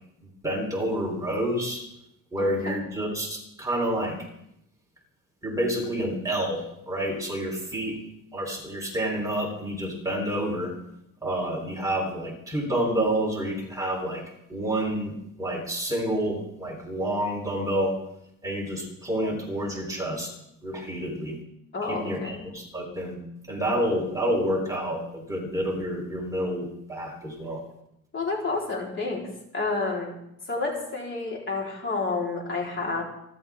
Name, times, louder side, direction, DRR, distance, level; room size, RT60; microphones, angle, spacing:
voice 1, 0.2-1.9 2.3-4.2 5.4-8.0 8.3-10.7 11.2-14.2 14.5-15.1 15.4-18.0 18.4-20.3 20.6-21.4 21.8-23.2 23.5-27.6, right 1 dB, 10° right, -1 dB, 3.8 m, -29 dB
voice 2, 2.4-2.8 21.7-22.4 28.1-29.3 29.5-30.2 30.5-33.0, left 3 dB, 35° left, -2 dB, 4.0 m, -30 dB
28.0 x 11.5 x 3.7 m, 0.78 s
cardioid pair, 155°, 34 cm